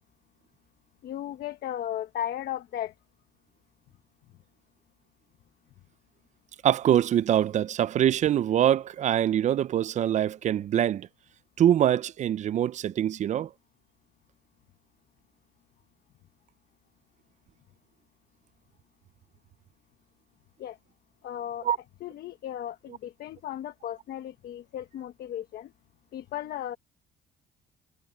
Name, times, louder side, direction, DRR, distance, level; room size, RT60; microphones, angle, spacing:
voice 1, 1.0-2.9 20.6-20.8 21.2-21.7 22.0-25.7 26.1-26.8, left 11 dB, 65° left, 1.2 m, -35 dB
voice 2, 6.6-11.1 11.6-13.5 21.6-21.8, right 10 dB, 45° right, 0.5 m, -24 dB
cardioid pair, 110°, 17 cm